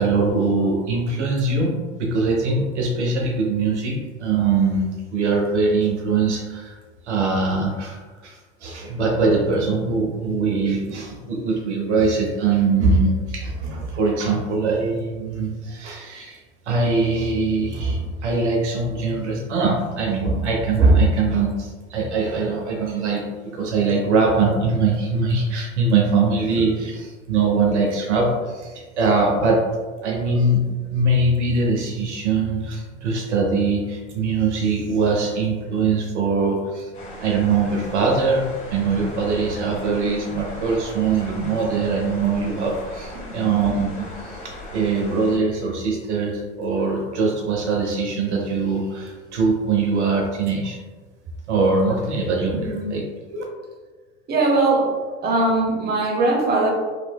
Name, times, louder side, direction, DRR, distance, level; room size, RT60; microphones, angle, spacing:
voice 1, 0.0-6.7 7.0-23.3 23.5-29.7 30.0-30.6 30.9-36.9 37.2-38.5 38.7-50.8 51.5-53.0 53.3-53.4, right 3 dB, 75° right, 0 dB, 0.6 m, -22 dB
sound 1, 36.9-45.4, left 1 dB, 20° left, 1.0 m, -37 dB
voice 2, 43.1-43.5 52.5-52.9 54.3-55.0 55.2-56.7, right 2 dB, 25° right, -1 dB, 0.9 m, -21 dB
3.1 x 2.8 x 2.2 m, 1.3 s
hypercardioid pair, 80°, 35 cm